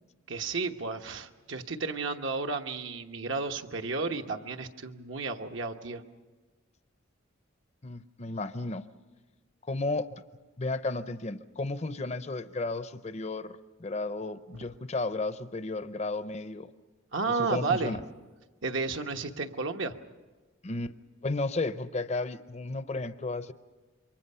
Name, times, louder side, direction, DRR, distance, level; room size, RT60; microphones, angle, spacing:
voice 1, 0.3-6.0 17.1-18.0 18.6-20.0, right 4 dB, 65° right, 5 dB, 1.2 m, -32 dB
voice 2, 7.8-8.9 9.6-10.2 10.6-16.7 17.3-18.0 20.6-21.0 21.2-23.5, left 2 dB, 35° left, 12 dB, 0.6 m, -33 dB
28.0 x 23.5 x 5.6 m, 1.3 s
head